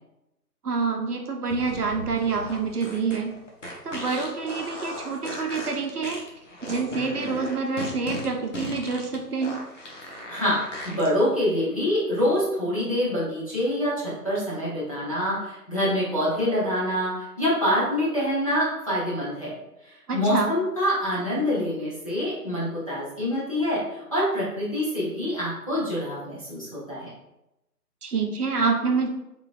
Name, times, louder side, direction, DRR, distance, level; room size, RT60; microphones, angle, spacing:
voice 1, 0.6-3.3 3.8-6.2 6.7-9.6 20.1-20.5 28.0-29.1, right 4 dB, 65° right, 3 dB, 0.7 m, -27 dB
sound 1, 1.4-11.1, left 1 dB, 50° left, 0.9 m, -37 dB
voice 2, 10.3-10.6 10.8-19.6 19.8-27.1, equal, 20° left, -10 dB, 0.8 m, -26 dB
3.7 x 3.7 x 2.4 m, 0.91 s
figure-of-eight pair, 165°, 49 cm